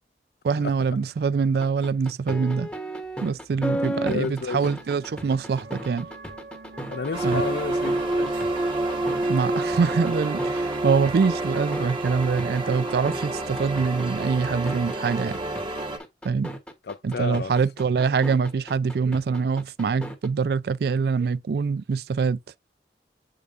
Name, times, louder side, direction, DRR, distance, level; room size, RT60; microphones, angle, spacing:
voice 1, 0.4-2.7 3.2-6.1 7.2-7.4 9.3-15.4 16.2-16.5 17.0-22.4, right 5 dB, 60° right, 0.3 m, -24 dB
sound 1, 1.6-20.3, right 1 dB, 5° left, 1.0 m, -35 dB
sound 2, 3.0-13.4, right 3 dB, 75° right, 1.2 m, -43 dB
voice 2, 3.7-4.7 6.9-8.4 16.9-17.5, left 4 dB, 65° left, 0.4 m, -32 dB
sound 3, 7.1-16.0, right 2 dB, 30° right, 1.2 m, -28 dB
7.9 x 4.9 x 2.5 m
head